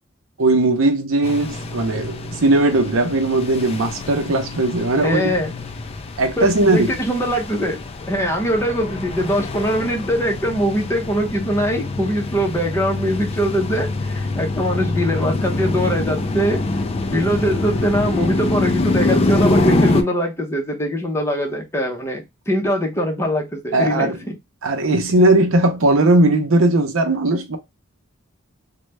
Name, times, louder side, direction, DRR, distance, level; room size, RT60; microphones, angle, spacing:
voice 1, 0.4-5.3 6.2-6.9 23.7-24.2 24.6-27.6, right 2 dB, 80° right, 0.6 m, -18 dB
sound 1, 1.2-20.0, left 2 dB, 30° left, 0.3 m, -25 dB
voice 2, 5.0-5.5 6.4-7.8 8.1-16.6 17.1-24.1, equal, 15° left, 0.8 m, -22 dB
3.1 x 2.2 x 3.1 m
head